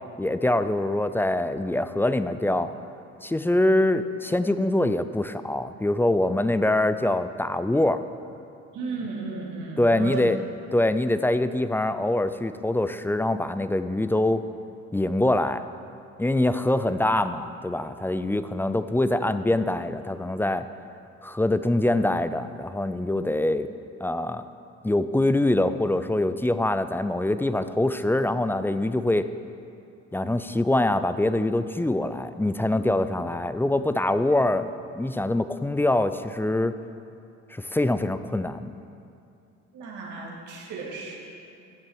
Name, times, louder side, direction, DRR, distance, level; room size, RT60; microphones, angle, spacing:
voice 1, 0.2-2.7 3.2-8.0 9.8-10.4 10.7-14.5 14.9-15.6 16.2-20.7 21.2-23.7 24.0-24.4 24.8-29.3 30.1-36.7 37.5-38.7, left 1 dB, 10° left, 11 dB, 0.3 m, -24 dB
voice 2, 8.7-10.2 39.7-41.2, right 4 dB, 90° right, -3 dB, 2.2 m, -34 dB
13.0 x 7.5 x 4.7 m, 2.6 s
cardioid pair, 90°, 30 cm